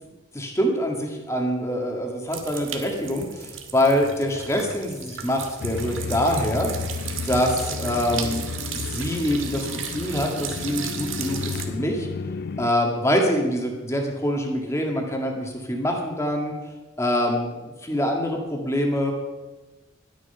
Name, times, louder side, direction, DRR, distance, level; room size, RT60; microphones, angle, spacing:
voice 1, 0.3-6.7 7.2-8.5 8.7-12.1 12.6-16.5 17.0-19.1, equal, 15° left, 1 dB, 1.8 m, -25 dB
sound 1, 2.3-11.6, right 7 dB, 70° right, 1.5 m, -35 dB
sound 2, 5.6-12.7, left 4 dB, 50° left, 0.3 m, -32 dB
12.5 x 10.5 x 5.6 m, 1.2 s
head